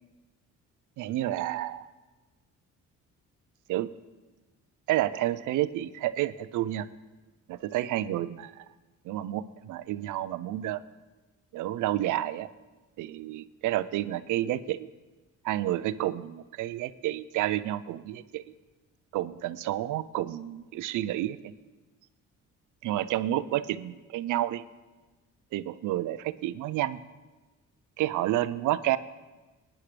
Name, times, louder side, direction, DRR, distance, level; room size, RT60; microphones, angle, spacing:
voice 1, 1.0-1.9 3.7-3.9 4.9-6.9 7.5-8.6 9.0-10.8 11.5-12.5 13.0-14.9 15.4-18.4 19.1-21.5 22.8-24.6 25.5-27.0 28.0-29.0, right 14 dB, 80° right, 15 dB, 0.5 m, -30 dB
18.5 x 10.0 x 3.3 m, 1.2 s
cardioid pair, 90°, 30 cm